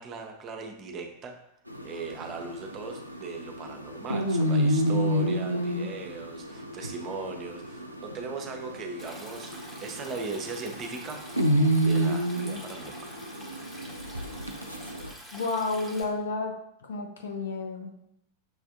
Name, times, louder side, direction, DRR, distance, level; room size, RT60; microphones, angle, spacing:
voice 1, 0.0-1.3 1.8-11.2 11.7-13.2, right 4 dB, 30° right, 4 dB, 0.6 m, -38 dB
sound 1, 1.7-15.1, equal, 90° right, 0.3 m, -29 dB
Stream, 9.0-16.0, equal, 5° left, 0.9 m, -46 dB
voice 2, 15.3-16.5 16.8-18.0, left 3 dB, 65° left, 3 dB, 0.6 m, -31 dB
6.2 x 2.5 x 2.5 m, 0.77 s
figure-of-eight pair, 90°, 0 cm